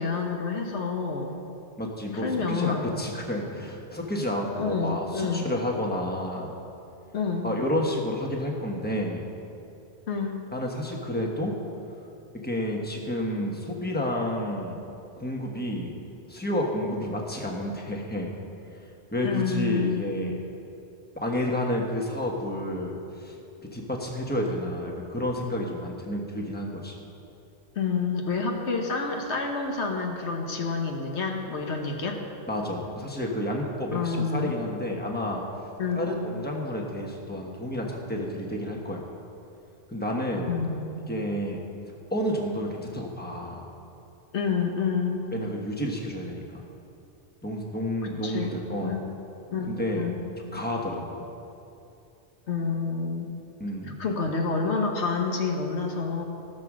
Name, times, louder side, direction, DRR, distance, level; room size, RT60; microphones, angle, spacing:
voice 1, 0.0-1.3 2.1-3.0 4.5-5.5 7.1-7.5 10.1-10.4 19.2-20.1 27.7-32.2 33.9-34.5 35.8-36.0 40.4-41.1 44.3-45.2 48.2-49.1 49.5-50.2 52.5-53.3 54.0-56.2, left 4 dB, 80° left, 2 dB, 1.4 m, -28 dB
voice 2, 1.8-6.5 7.4-9.2 10.5-11.5 12.3-14.8 15.2-16.0 16.3-18.3 19.1-20.3 21.1-23.3 23.6-26.9 32.5-35.4 35.9-39.1 39.9-40.5 41.1-41.6 42.1-43.6 45.3-46.6 47.4-49.0 49.6-50.1 50.5-51.3 53.6-54.0, left 1 dB, 10° left, 0 dB, 1.2 m, -30 dB
15.0 x 6.7 x 6.2 m, 2.7 s
omnidirectional pair, 1.1 m